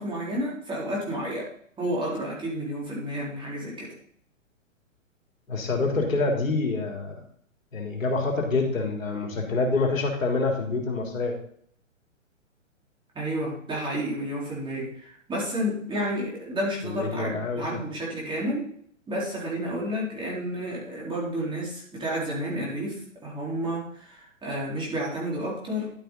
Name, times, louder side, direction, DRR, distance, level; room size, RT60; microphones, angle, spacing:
voice 1, 0.0-1.5 1.8-3.9 13.1-18.7 19.1-25.9, equal, 10° right, -5 dB, 4.3 m, -31 dB
voice 2, 5.5-7.2 7.7-11.3 16.8-17.6, left 3 dB, 80° left, 1 dB, 3.5 m, -26 dB
12.5 x 7.4 x 4.0 m, 0.62 s
hypercardioid pair, 130°, 40 cm